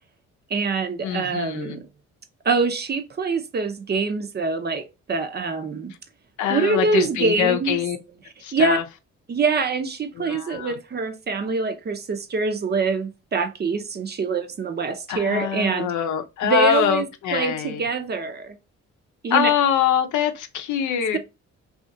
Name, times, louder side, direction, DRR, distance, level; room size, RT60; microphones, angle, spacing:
voice 1, 0.5-1.9 2.4-5.9 6.5-7.8 8.5-8.8 9.3-15.9 16.4-18.6 19.2-19.5, right 4 dB, 35° right, 0.6 m, -25 dB
voice 2, 1.0-1.8 6.4-8.0 8.4-8.8 10.2-10.8 15.1-17.8 19.3-21.2, left 9 dB, 75° left, 0.6 m, -23 dB
2.7 x 2.4 x 2.5 m
cardioid pair, 90°, 30 cm